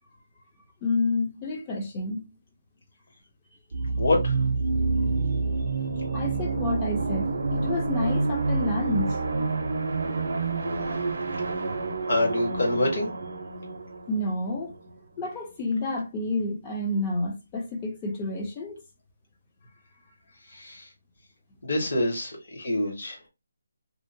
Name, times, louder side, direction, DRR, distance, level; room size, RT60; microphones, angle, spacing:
voice 1, 0.8-2.3 6.1-9.2 14.1-14.7 15.2-18.8, left 2 dB, 10° left, 0.4 m, -29 dB
sound 1, 3.7-15.3, right 3 dB, 50° right, 0.5 m, -28 dB
voice 2, 4.0-4.4 12.1-13.1 20.5-20.9 21.6-23.2, left 1 dB, 45° left, 1.0 m, -26 dB
2.7 x 2.1 x 2.5 m
hypercardioid pair, 180°, 0 cm